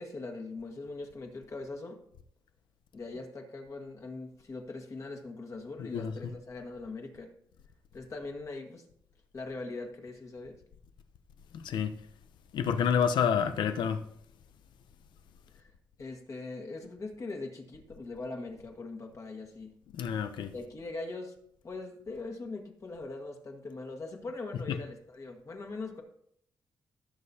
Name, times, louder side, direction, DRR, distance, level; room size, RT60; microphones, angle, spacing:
voice 1, 0.0-2.0 2.9-7.3 7.9-8.8 9.3-10.6 15.5-15.7 16.0-19.7 20.5-21.3 21.6-26.0, left 3 dB, 45° left, 1.7 m, -41 dB
voice 2, 5.8-6.3 11.5-12.0 12.5-14.0 19.9-20.5 24.7-24.8, left 7 dB, 85° left, 0.8 m, -29 dB
16.0 x 6.6 x 2.9 m
cardioid pair, 95°, 8 cm